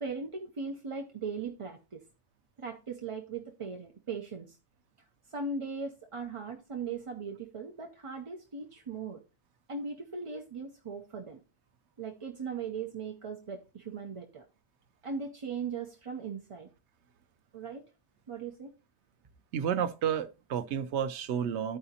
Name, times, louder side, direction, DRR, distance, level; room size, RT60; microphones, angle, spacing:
voice 1, 0.0-2.0 2.6-4.6 5.3-9.2 9.7-11.4 12.0-14.5 15.0-16.7 17.5-17.8 18.3-18.7, right 5 dB, 35° right, 0.6 m, -39 dB
voice 2, 19.5-21.8, right 8 dB, 85° right, 0.9 m, -31 dB
13.5 x 4.9 x 2.8 m
omnidirectional pair, 1.1 m